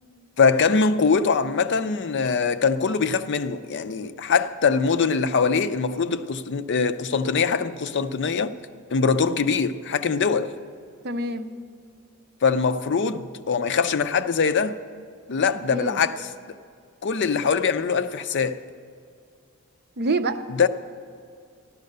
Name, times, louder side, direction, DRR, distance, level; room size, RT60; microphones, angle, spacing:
voice 1, 0.4-8.6 8.9-10.5 12.4-14.8 15.3-16.3 17.0-18.6 20.5-20.7, left 5 dB, 55° left, 0.5 m, -22 dB
voice 2, 11.0-11.5 15.7-16.0 20.0-20.5, right 2 dB, 50° right, 0.7 m, -26 dB
14.0 x 11.5 x 6.6 m
head